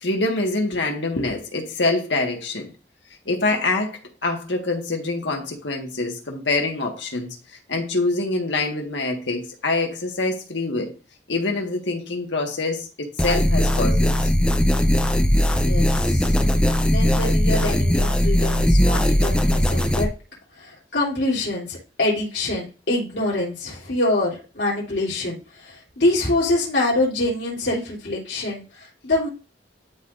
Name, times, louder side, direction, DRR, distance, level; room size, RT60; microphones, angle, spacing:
voice 1, 0.0-2.7 3.2-7.4 7.7-10.9 11.3-14.2, left 2 dB, 90° left, 1.6 m, -25 dB
sound 1, 13.2-20.1, equal, 5° left, 0.6 m, -19 dB
voice 2, 15.6-16.3 16.8-20.1 20.6-29.3, left 2 dB, 70° left, 3.1 m, -25 dB
12.0 x 4.0 x 2.6 m
head